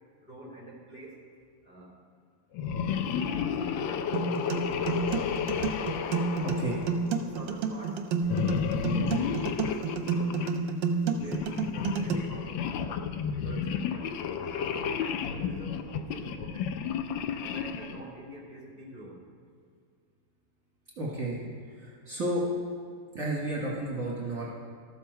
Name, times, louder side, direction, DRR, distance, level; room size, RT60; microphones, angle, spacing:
voice 1, 0.2-1.2 1.6-1.9 3.1-5.3 6.0-6.8 7.2-8.0 8.9-10.5 10.8-12.7 13.4-16.7 17.2-19.2, equal, 25° left, -3 dB, 2.4 m, -46 dB
sound 1, 2.5-7.4 8.2-10.6 11.2-18.0, left 7 dB, 75° left, 1.2 m, -32 dB
sound 2, 4.1-12.1, right 5 dB, 70° right, 1.4 m, -30 dB
voice 2, 21.0-21.4 21.8-22.4 23.1-24.5, right 1 dB, 40° right, -6 dB, 1.8 m, -32 dB
13.0 x 7.2 x 4.5 m, 2.2 s
omnidirectional pair, 2.3 m